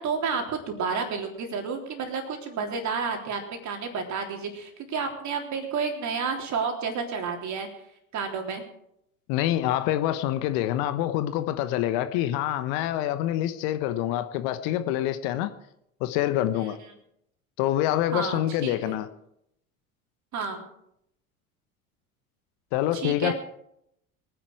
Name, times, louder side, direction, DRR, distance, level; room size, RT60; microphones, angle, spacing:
voice 1, 0.0-7.7 8.1-8.6 16.5-16.7 18.1-19.0 20.3-20.7 22.9-23.3, right 5 dB, 40° right, 3.5 m, -31 dB
voice 2, 9.3-15.5 16.0-16.8 17.6-19.1 22.7-23.3, left 13 dB, 55° left, 1.1 m, -26 dB
23.0 x 10.0 x 4.7 m
figure-of-eight pair, 70°, 43 cm